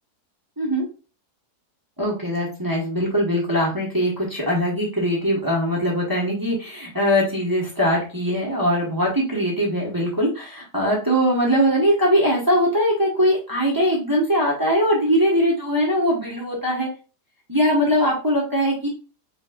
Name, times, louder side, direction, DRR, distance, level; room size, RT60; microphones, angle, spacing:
voice 1, 2.0-16.9 17.5-18.9, equal, 15° right, -3 dB, 1.2 m, -21 dB
5.2 x 3.3 x 2.5 m, 0.33 s
omnidirectional pair, 1.7 m